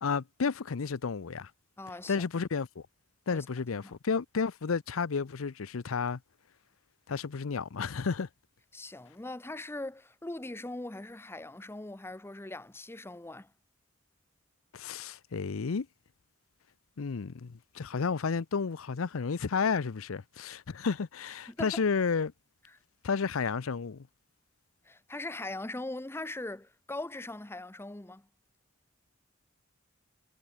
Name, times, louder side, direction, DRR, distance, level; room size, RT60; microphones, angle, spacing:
voice 1, 0.0-1.5 2.1-2.8 3.3-6.2 7.1-8.3 14.7-15.9 17.0-22.3 23.0-24.1, left 5 dB, 85° left, 0.6 m, -32 dB
voice 2, 1.8-2.3 3.3-3.5 3.8-3.9 8.7-13.5 21.5-21.8 24.9-28.3, left 2 dB, 10° left, 0.7 m, -40 dB
head